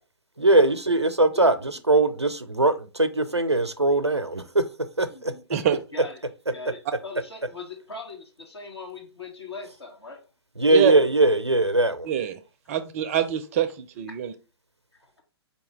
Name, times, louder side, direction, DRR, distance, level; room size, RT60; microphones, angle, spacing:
voice 1, 0.4-4.6 5.0-5.3 10.6-12.1, right 2 dB, 90° right, 0.5 m, -21 dB
voice 2, 5.1-5.4 5.9-6.2 6.5-10.2 14.9-15.2, left 4 dB, 75° left, 1.6 m, -40 dB
voice 3, 12.0-12.4 12.7-14.3, right 10 dB, 35° right, 0.4 m, -25 dB
4.8 x 2.8 x 3.0 m
figure-of-eight pair, 120°, 14 cm